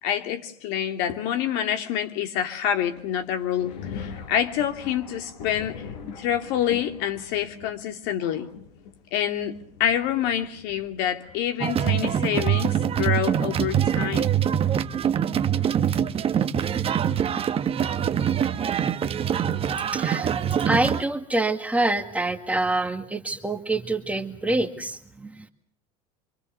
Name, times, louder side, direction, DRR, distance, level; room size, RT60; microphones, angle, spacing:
voice 1, 0.0-5.9 6.2-8.5 9.1-9.5 9.8-14.3, left 10 dB, 60° left, 6 dB, 2.7 m, -27 dB
Thunder, 2.8-12.7 13.5-13.6 14.6-14.8 15.5-15.7, left 6 dB, 80° left, 4.8 m, -43 dB
sound 1, 11.6-21.0, right 9 dB, 30° right, 1.1 m, -24 dB
voice 2, 19.9-25.5, right 2 dB, 5° right, 5 dB, 2.0 m, -26 dB
26.0 x 24.0 x 6.9 m, 0.62 s
supercardioid pair, 110°, 20 cm